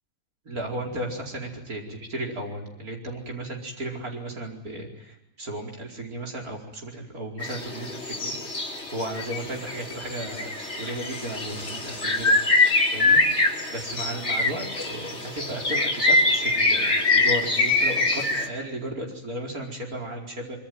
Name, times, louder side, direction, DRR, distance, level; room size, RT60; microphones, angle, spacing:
voice 1, 0.5-8.4 8.9-13.2 13.7-20.6, right 1 dB, 80° right, 0 dB, 5.2 m, -35 dB
sound 1, 7.4-18.5, left 2 dB, 50° left, 4.0 m, -24 dB
25.0 x 24.5 x 9.3 m, 0.91 s
omnidirectional pair, 1.5 m